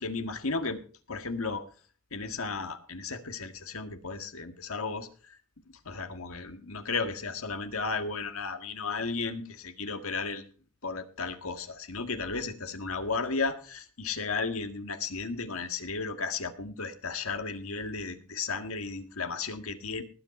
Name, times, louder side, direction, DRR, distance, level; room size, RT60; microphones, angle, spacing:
voice 1, 0.0-0.8 1.1-1.6 2.1-5.4 5.7-10.5 10.8-20.0, left 4 dB, 90° left, 8 dB, 1.8 m, -34 dB
19.0 x 8.4 x 4.3 m, 0.38 s
head